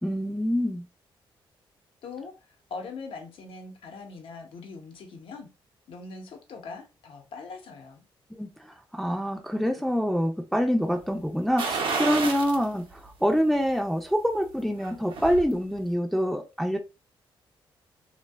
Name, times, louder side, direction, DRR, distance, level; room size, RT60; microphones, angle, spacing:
voice 1, 0.0-0.9 8.4-16.8, equal, ahead, 0.4 m, -26 dB
voice 2, 2.0-2.3 2.7-5.5 5.9-8.1, left 4 dB, 70° left, 0.7 m, -41 dB
sound 1, 11.6-12.6 13.1-13.2 14.7-15.5 15.8-15.9, right 4 dB, 70° right, 0.6 m, -30 dB
2.6 x 2.1 x 2.2 m
cardioid pair, 85°, 9 cm